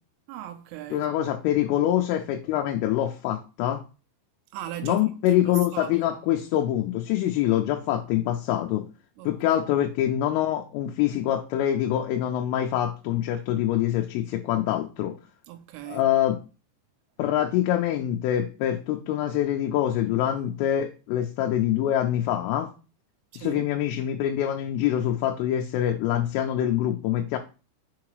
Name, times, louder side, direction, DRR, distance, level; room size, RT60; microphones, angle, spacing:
voice 1, 0.3-1.1 4.5-6.1 9.2-9.6 15.5-16.1 23.3-23.7, right 12 dB, 85° right, 3.2 m, -38 dB
voice 2, 0.9-3.8 4.8-8.9 9.2-15.2 15.9-16.4 17.2-22.7 23.4-27.4, left 12 dB, 90° left, 3.2 m, -25 dB
6.6 x 4.8 x 3.1 m
omnidirectional pair, 5.6 m